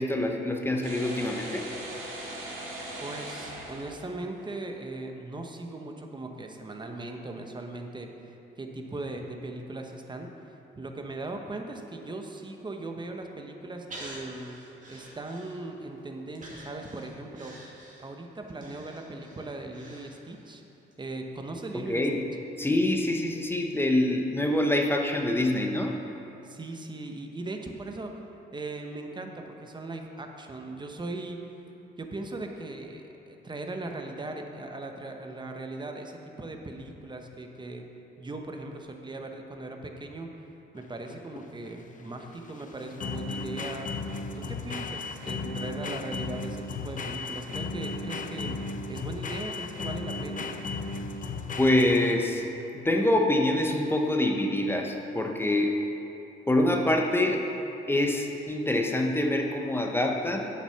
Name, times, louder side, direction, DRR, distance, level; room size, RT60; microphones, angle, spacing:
voice 1, 0.0-1.7 21.9-22.2 22.6-26.0 51.6-52.4 52.7-55.8 56.5-57.5 57.9-60.5, left 1 dB, 10° left, 2 dB, 0.8 m, -25 dB
sound 1, 0.8-4.4, right 1 dB, 80° right, 2.2 m, -39 dB
voice 2, 3.0-14.6 14.9-17.5 18.0-20.6 21.0-22.2 26.4-28.2 28.5-31.4 32.0-37.9 38.2-40.3 40.7-43.9 44.3-48.6 48.9-50.5, right 2 dB, 25° right, 3 dB, 1.0 m, -39 dB
Breathing, 13.9-15.9 16.4-20.5 20.9-21.0, right 1 dB, 40° right, 2.1 m, -47 dB
sound 2, 40.8-52.4, left 3 dB, 40° left, 0.6 m, -35 dB
8.1 x 6.9 x 5.7 m, 2.9 s
cardioid pair, 90°, 20 cm